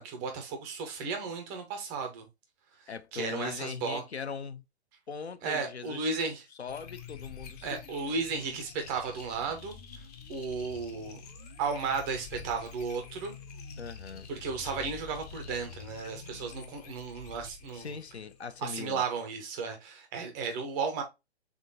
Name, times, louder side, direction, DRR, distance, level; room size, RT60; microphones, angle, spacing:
voice 1, 0.0-2.3 3.1-4.0 5.4-6.4 7.6-9.7 10.3-11.2 11.6-13.3 14.3-18.0 18.6-21.0, right 5 dB, 10° right, 0.4 m, -34 dB
voice 2, 2.9-4.6 5.1-6.0 6.6-8.1 13.8-14.3 17.7-19.0, left 6 dB, 75° left, 0.7 m, -40 dB
sound 1, 6.7-18.6, left 6 dB, 35° left, 0.8 m, -47 dB
3.7 x 3.4 x 3.7 m
figure-of-eight pair, 125°, 33 cm